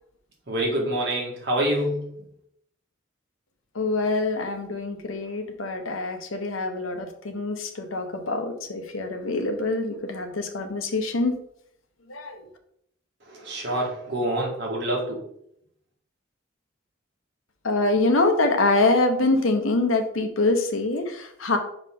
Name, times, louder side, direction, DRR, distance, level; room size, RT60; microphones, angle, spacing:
voice 1, 0.5-2.1 13.3-15.2, right 1 dB, 55° right, -2 dB, 1.9 m, -26 dB
voice 2, 3.7-11.3 12.1-12.4 17.6-21.6, left 2 dB, 80° left, 6 dB, 0.9 m, -25 dB
5.4 x 4.8 x 3.7 m, 0.72 s
head